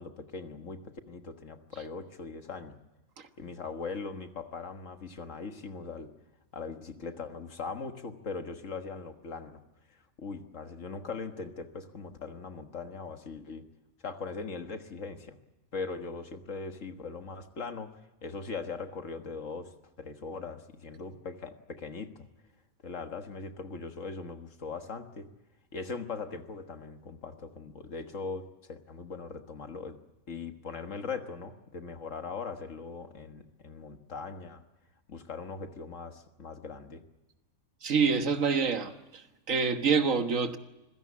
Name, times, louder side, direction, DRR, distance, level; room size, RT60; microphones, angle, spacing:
voice 1, 0.0-2.8 3.4-6.1 6.5-9.6 9.9-13.6 14.0-15.4 15.7-17.9 18.2-19.7 20.0-22.3 22.8-25.3 25.7-28.4 28.7-30.0 30.3-34.6 35.1-37.0, left 4 dB, 65° left, 1.8 m, -40 dB
voice 2, 37.8-40.6, right 5 dB, 65° right, 1.8 m, -27 dB
26.0 x 16.5 x 8.5 m
omnidirectional pair, 1.5 m